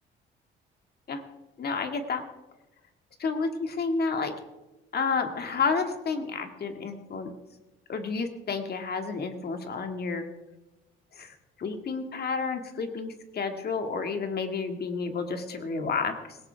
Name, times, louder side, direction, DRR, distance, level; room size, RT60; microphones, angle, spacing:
voice 1, 1.6-2.2 3.2-4.3 4.9-7.3 7.9-10.3 11.1-16.4, left 4 dB, 55° left, 5 dB, 2.1 m, -30 dB
19.0 x 17.5 x 3.5 m, 1.0 s
cardioid pair, 90°, 20 cm